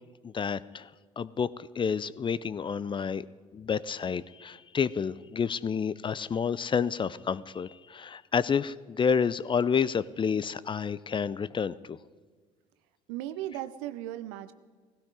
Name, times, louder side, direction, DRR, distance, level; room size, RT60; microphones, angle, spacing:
voice 1, 0.2-0.9 1.2-3.3 3.5-12.0, left 6 dB, 30° left, 19 dB, 0.6 m, -29 dB
voice 2, 13.1-14.5, right 13 dB, 70° right, 12 dB, 0.9 m, -36 dB
18.0 x 16.0 x 4.8 m, 1.5 s
hypercardioid pair, 60°, 17 cm